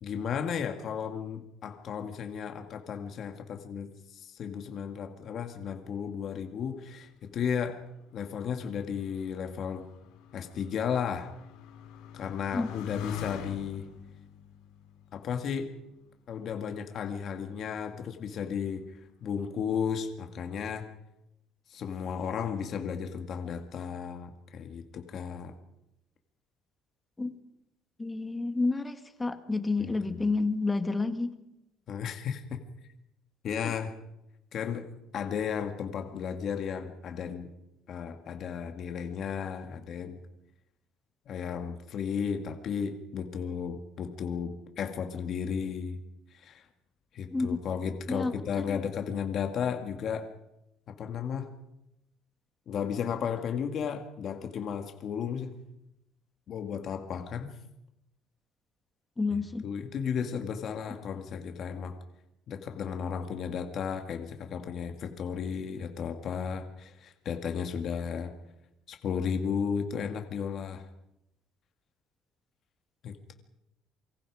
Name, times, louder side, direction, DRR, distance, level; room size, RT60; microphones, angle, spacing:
voice 1, 0.0-7.8 8.1-9.9 10.3-11.3 12.1-13.9 15.1-15.7 16.3-20.9 21.7-25.6 29.8-30.3 31.9-32.6 33.4-33.9 34.5-34.9 35.1-37.5 37.9-40.2 41.3-46.0 46.3-46.7 47.1-50.3 50.9-51.5 52.7-55.5 56.5-57.5 59.6-62.0 62.5-68.3 68.9-70.8 73.0-73.3, left 7 dB, 45° left, 5 dB, 2.3 m, -34 dB
Motorcycle, 7.2-16.2 17.0-17.5, left 10 dB, 90° left, 6.8 m, -45 dB
voice 2, 28.0-31.3 33.6-33.7 47.3-47.6 48.1-48.3 48.7-48.8 59.2-59.6, left 3 dB, 15° left, 8 dB, 1.9 m, -29 dB
27.0 x 24.5 x 5.0 m, 0.87 s
cardioid pair, 145°, 0 cm